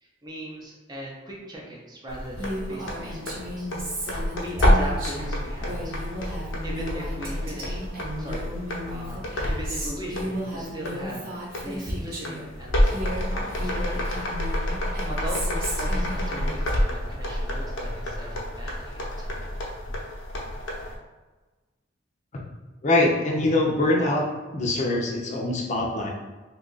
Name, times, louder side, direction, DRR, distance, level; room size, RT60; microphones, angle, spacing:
voice 1, 0.0-3.7 4.4-6.1 6.6-7.8 8.2-8.5 8.8-12.9 13.3-14.4 14.8-19.6, equal, 20° right, -3 dB, 0.6 m, -39 dB
sound 1, 2.1-21.0, equal, 90° left, 0.7 m, -28 dB
Female speech woman speaking, 2.4-12.5 12.8-16.7, equal, 50° right, 0.9 m, -35 dB
voice 2, 22.8-24.2 24.5-26.1, left 2 dB, 40° left, -2 dB, 0.5 m, -23 dB
2.8 x 2.4 x 3.8 m, 1.2 s
head